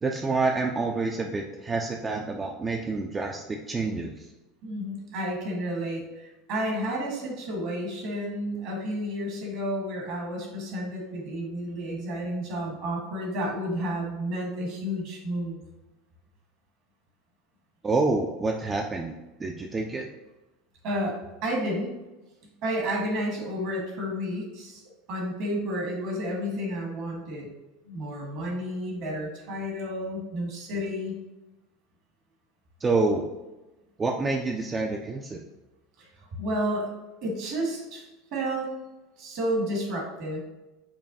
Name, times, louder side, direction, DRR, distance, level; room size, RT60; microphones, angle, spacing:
voice 1, 0.0-4.3 17.8-20.1 32.8-33.2 34.0-35.4, right 3 dB, 25° right, 2 dB, 0.3 m, -28 dB
voice 2, 4.6-15.6 20.8-21.9 22.4-24.8 25.1-27.5 27.8-31.1 36.0-36.1 36.4-36.9 37.2-38.0 38.3-38.7 39.2-40.4, equal, 60° right, -1 dB, 1.3 m, -31 dB
5.3 x 2.2 x 2.6 m, 1.0 s
hypercardioid pair, 80°, 0 cm